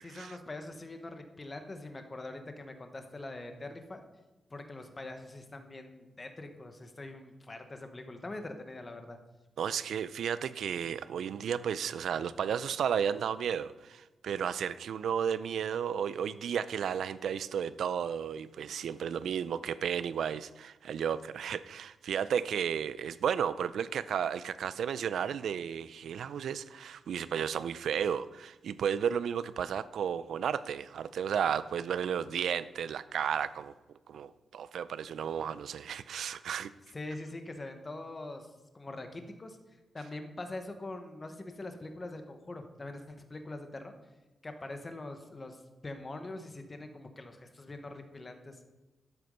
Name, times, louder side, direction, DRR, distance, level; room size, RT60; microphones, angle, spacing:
voice 1, 0.0-4.0 4.5-9.2 36.9-39.6 39.9-43.9 44.4-45.6 45.8-48.6, left 2 dB, 20° left, 6 dB, 1.1 m, -43 dB
voice 2, 9.6-33.7 34.1-36.7, right 8 dB, 80° right, 16 dB, 0.5 m, -33 dB
12.5 x 8.0 x 5.4 m, 1.1 s
wide cardioid pair, 175°, 0 cm